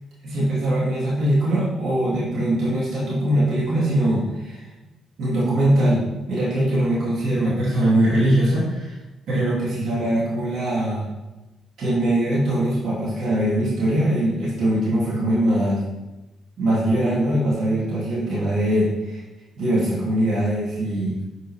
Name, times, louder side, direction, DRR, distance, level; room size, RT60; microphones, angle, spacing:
voice 1, 0.2-4.7 5.2-9.0 9.3-11.1 11.8-15.8 16.6-19.2 19.6-21.1, right 1 dB, 65° right, -8 dB, 2.6 m, -21 dB
8.5 x 5.1 x 3.4 m, 1.1 s
cardioid pair, 90°, 0 cm